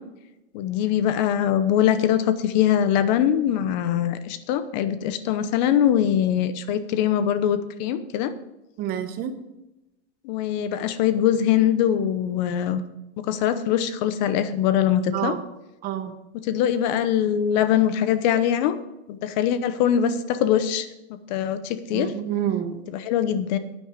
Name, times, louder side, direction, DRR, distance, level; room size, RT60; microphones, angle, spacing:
voice 1, 0.5-8.3 10.2-12.8 13.2-15.3 16.4-18.8 19.1-20.9 21.3-22.1 22.9-23.6, left 10 dB, 45° left, 12 dB, 0.8 m, -22 dB
voice 2, 8.8-9.4 15.1-15.4 15.8-16.1 21.9-22.8, right 10 dB, 30° right, 9 dB, 0.9 m, -28 dB
10.5 x 8.9 x 5.1 m, 0.95 s
supercardioid pair, 145°, 32 cm